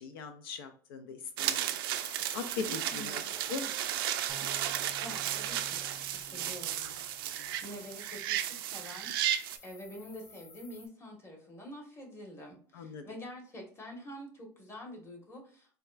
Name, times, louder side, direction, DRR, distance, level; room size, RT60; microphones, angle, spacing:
voice 1, 0.0-1.7 2.3-3.2 3.5-3.7 7.4-7.5 12.7-13.0, left 5 dB, 85° left, 8 dB, 0.4 m, -40 dB
sound 1, 1.4-9.6, right 12 dB, 85° right, 0.4 m, -34 dB
sound 2, 1.9-10.9, left 3 dB, 40° left, 0.8 m, -53 dB
voice 2, 2.7-3.2 5.0-7.0 7.6-15.8, equal, 25° left, 0 dB, 1.3 m, -47 dB
sound 3, 4.3-7.9, right 3 dB, ahead, 0.6 m, -53 dB
4.1 x 2.3 x 2.4 m, 0.43 s
supercardioid pair, 105°, 12 cm